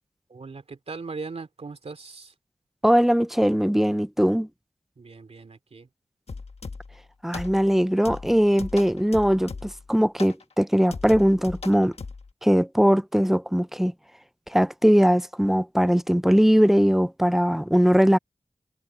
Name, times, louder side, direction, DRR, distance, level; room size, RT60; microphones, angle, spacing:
voice 1, 0.3-2.3 5.0-5.9, right 4 dB, 65° right, 2.9 m, -39 dB
voice 2, 2.8-4.5 7.2-11.9 12.4-13.9 14.5-18.2, equal, 5° right, 0.6 m, -20 dB
sound 1, 6.3-7.0 7.3-7.8 8.0-9.9 10.2-10.4 10.9-12.3, left 4 dB, 65° left, 1.5 m, -38 dB
wide cardioid pair, 75°, 11 cm